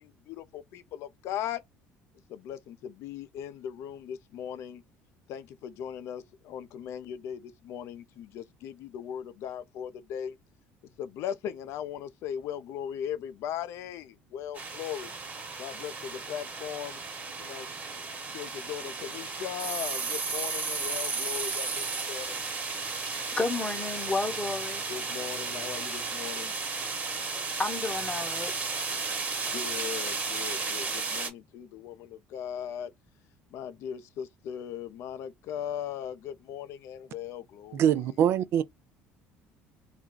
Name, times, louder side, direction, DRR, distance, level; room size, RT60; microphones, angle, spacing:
voice 1, 0.0-1.6 2.3-4.8 5.3-10.4 11.0-15.1 15.6-17.0 17.4-18.1 18.3-22.4 24.9-26.5 29.5-32.9 33.5-38.2, left 9 dB, 65° left, 0.5 m, -38 dB
sound 1, 14.5-31.3, right 4 dB, 35° right, 1.2 m, -34 dB
voice 2, 23.1-24.9 27.6-28.5, left 3 dB, 20° left, 0.8 m, -31 dB
voice 3, 37.7-38.6, right 10 dB, 60° right, 0.3 m, -24 dB
2.5 x 2.2 x 3.6 m
supercardioid pair, 85°, 5 cm